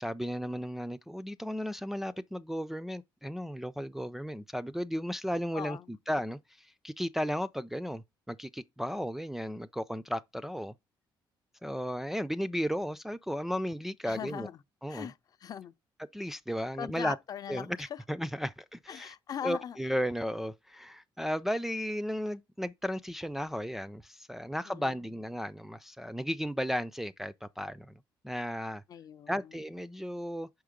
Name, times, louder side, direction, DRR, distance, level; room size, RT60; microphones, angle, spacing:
voice 1, 0.0-10.7 11.6-14.5 14.8-15.1 16.1-17.2 17.5-19.1 19.4-28.8 29.3-30.5, equal, 5° right, 0.3 m, -35 dB
voice 2, 5.5-5.9 14.1-14.6 14.9-15.7 16.8-18.0 18.9-19.8 24.7-25.0 28.9-29.5, left 9 dB, 50° left, 0.5 m, -40 dB
6.2 x 4.7 x 5.0 m
cardioid pair, 135°, 8 cm